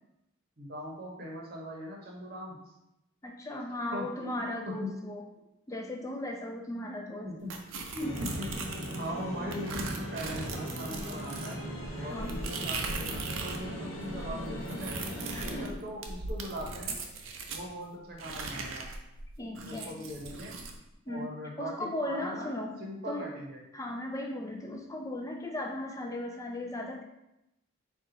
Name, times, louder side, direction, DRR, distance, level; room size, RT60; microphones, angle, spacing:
voice 1, 0.6-2.6 3.5-3.6 3.9-4.9 7.2-7.5 7.9-8.6 9.0-11.6 12.0-14.9 15.4-17.0 17.5-18.9 19.6-20.5 21.1-23.6, equal, 45° right, -1 dB, 0.8 m, -40 dB
voice 2, 3.2-5.2 5.7-7.3 12.0-12.4 15.3-15.8 19.4-19.9 21.1-21.3 21.6-22.7 23.1-23.3 23.7-27.0, left 1 dB, 15° left, 2 dB, 0.3 m, -37 dB
sound 1, 7.5-9.1 9.5-13.7 13.9-17.6 18.2-20.8, right 3 dB, 65° right, 0.5 m, -39 dB
sound 2, 8.0-15.7, equal, 65° left, 0.8 m, -39 dB
4.1 x 2.3 x 3.8 m, 0.89 s
head